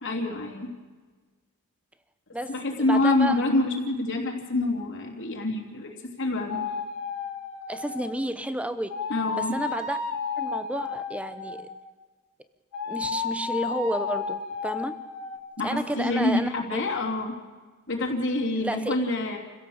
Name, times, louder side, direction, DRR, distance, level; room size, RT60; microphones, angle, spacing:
voice 1, 0.0-0.7 2.5-6.6 9.1-9.6 15.6-17.3 17.9-19.4, left 2 dB, 55° left, 0 dB, 3.1 m, -26 dB
voice 2, 2.3-2.6 2.9-3.4 7.7-9.0 9.4-10.0 10.4-11.7 12.9-15.0 15.6-16.9 18.6-18.9, right 1 dB, 5° right, 11 dB, 0.9 m, -31 dB
sound 1, 6.5-8.2 8.9-11.8 12.7-15.4, left 5 dB, 80° left, 3.3 m, -32 dB
28.5 x 16.5 x 7.2 m, 1.4 s
head